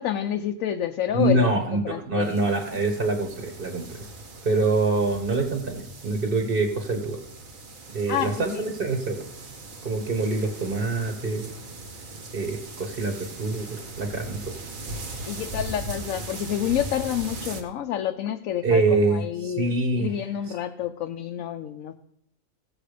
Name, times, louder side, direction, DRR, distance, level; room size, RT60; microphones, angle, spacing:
voice 1, 0.0-2.5 8.1-8.6 15.2-21.9, left 11 dB, 85° left, 6 dB, 1.0 m, -29 dB
voice 2, 1.1-4.0 4.4-7.2 7.9-9.2 9.8-11.5 12.3-14.4 18.6-20.1, right 3 dB, 45° right, 4 dB, 1.4 m, -25 dB
sound 1, 2.2-17.6, right 2 dB, 90° right, 1.9 m, -39 dB
16.0 x 7.3 x 5.0 m, 0.73 s
omnidirectional pair, 1.4 m